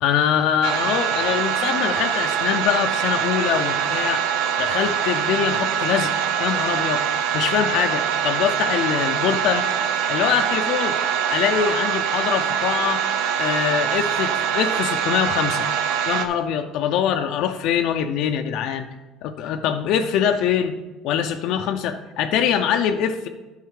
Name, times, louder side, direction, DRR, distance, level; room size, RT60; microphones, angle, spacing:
voice 1, 0.0-4.3 4.6-6.1 6.4-7.0 7.3-9.6 10.1-11.0 11.3-13.0 13.4-15.7 16.1-18.9 19.2-20.8 21.0-23.3, left 8 dB, 70° left, 5 dB, 0.5 m, -23 dB
sound 1, 0.6-16.3, right 8 dB, 85° right, 0.7 m, -23 dB
9.2 x 5.6 x 4.8 m, 1.2 s
cardioid pair, 110°, 0 cm